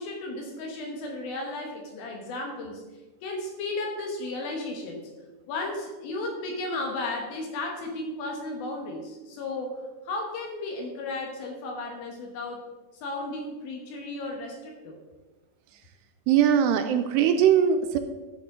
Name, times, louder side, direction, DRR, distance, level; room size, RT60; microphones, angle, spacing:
voice 1, 0.0-2.8 3.2-5.0 5.5-9.7 10.0-12.6 12.9-15.0, left 2 dB, 70° left, 1 dB, 2.7 m, -34 dB
voice 2, 16.3-18.0, right 8 dB, 80° right, 7 dB, 2.5 m, -21 dB
12.5 x 6.2 x 3.7 m, 1.2 s
omnidirectional pair, 5.0 m